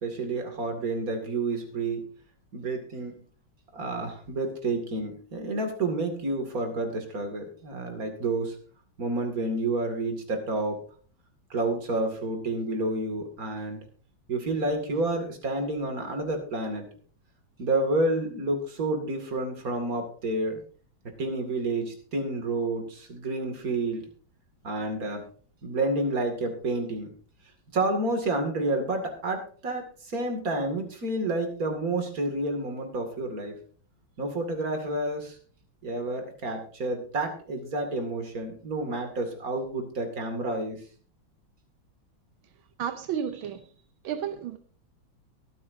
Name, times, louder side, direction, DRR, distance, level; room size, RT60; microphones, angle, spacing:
voice 1, 0.0-2.1 2.5-3.2 3.7-8.6 9.0-10.8 11.5-13.8 14.3-16.9 17.6-20.6 21.0-24.1 24.6-25.3 25.6-27.1 27.7-33.6 34.2-35.4 35.8-40.8, right 2 dB, 45° right, 2.7 m, -29 dB
voice 2, 42.8-43.7 44.0-44.6, right 8 dB, 85° right, 1.6 m, -32 dB
23.5 x 8.9 x 2.7 m
omnidirectional pair, 2.2 m